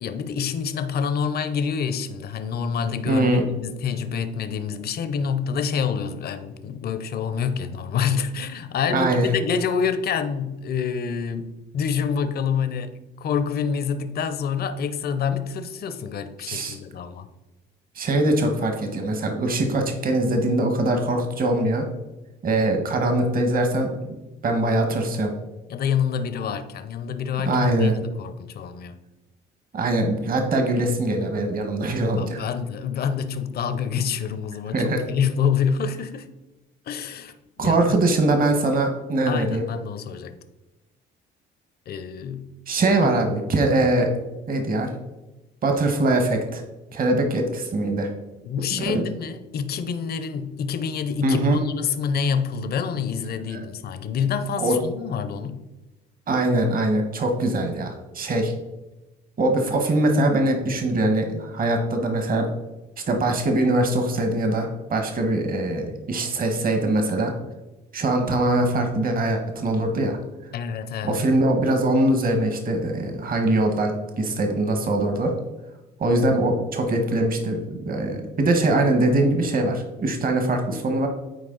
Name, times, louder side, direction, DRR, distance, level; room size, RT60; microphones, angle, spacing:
voice 1, 0.0-17.3 25.7-28.9 32.2-36.3 36.9-37.3 37.6-38.0 39.3-40.4 41.9-42.5 43.0-43.2 48.4-55.6 70.5-71.2, left 6 dB, 55° left, 0.7 m, -27 dB
voice 2, 3.1-3.4 8.9-9.3 16.5-16.7 18.0-21.9 22.4-24.0 24.4-25.3 27.4-27.9 29.7-32.4 34.7-35.0 37.6-39.6 42.7-44.1 44.5-44.9 45.6-46.6 46.9-48.1 48.7-49.0 51.2-51.6 53.5-53.6 54.6-54.8 56.3-58.5 59.4-62.5 63.1-67.3 67.9-70.2 71.0-75.3 76.0-81.1, right 2 dB, 50° right, 1.4 m, -22 dB
9.5 x 4.3 x 3.9 m
cardioid pair, 85°, 19 cm